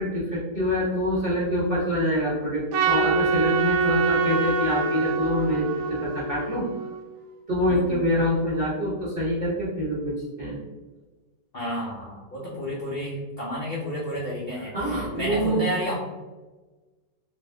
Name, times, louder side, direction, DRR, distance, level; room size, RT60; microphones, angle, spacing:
voice 1, 0.0-5.6 6.0-6.7 7.5-10.6 14.7-15.6, equal, 45° right, -7 dB, 0.8 m, -25 dB
Trumpet, 2.7-7.1, right 4 dB, 80° right, 0.6 m, -25 dB
voice 2, 7.7-8.1 11.5-16.0, left 1 dB, 55° left, -6 dB, 0.6 m, -31 dB
3.3 x 2.6 x 3.2 m, 1.2 s
omnidirectional pair, 1.9 m